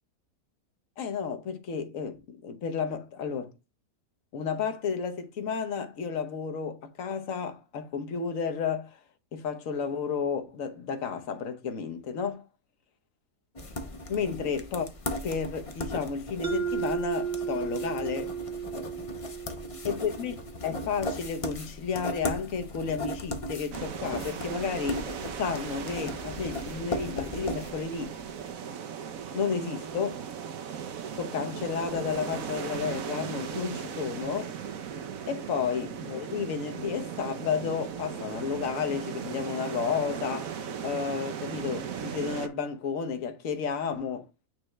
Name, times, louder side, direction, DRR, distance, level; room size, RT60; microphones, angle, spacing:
voice 1, 1.0-3.5 4.3-9.0 9.3-12.4 14.1-14.9 15.2-18.3 19.8-20.4 20.6-25.1 25.4-28.2 29.3-30.2 31.2-34.5 35.3-44.3, left 6 dB, 60° left, 1.3 m, -32 dB
sound 1, 13.6-28.4, left 1 dB, 35° left, 0.5 m, -37 dB
Mallet percussion, 16.4-21.0, right 7 dB, 45° right, 1.2 m, -34 dB
sound 2, 23.7-42.5, right 7 dB, 65° right, 1.1 m, -37 dB
8.9 x 3.4 x 3.2 m
omnidirectional pair, 1.7 m